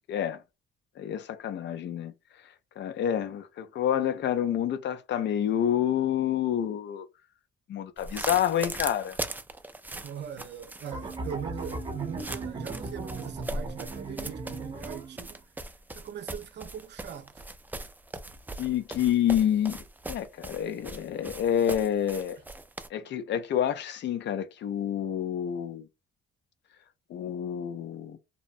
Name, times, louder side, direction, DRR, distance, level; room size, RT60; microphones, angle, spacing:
voice 1, 0.1-0.4 1.0-2.1 2.8-7.1 7.7-9.2 18.6-19.8 20.1-22.4 22.9-25.9 27.1-28.2, left 10 dB, 60° left, 0.4 m, -28 dB
sound 1, 8.0-22.9, right 2 dB, 10° right, 0.3 m, -39 dB
voice 2, 9.9-15.4 15.9-17.4, right 8 dB, 60° right, 0.5 m, -40 dB
sound 2, 10.9-15.2, right 3 dB, 25° right, 0.7 m, -37 dB
2.7 x 2.0 x 2.5 m
cardioid pair, 90°, 20 cm